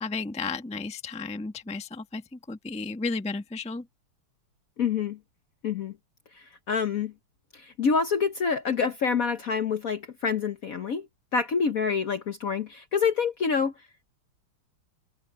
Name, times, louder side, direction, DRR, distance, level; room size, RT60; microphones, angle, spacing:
voice 1, 0.0-3.9, left 4 dB, 5° left, 0.7 m, -33 dB
voice 2, 4.8-5.2 5.6-5.9 6.3-7.1 7.5-11.1 11.3-13.7, left 5 dB, 55° left, 1.1 m, -27 dB
omnidirectional pair, 2.4 m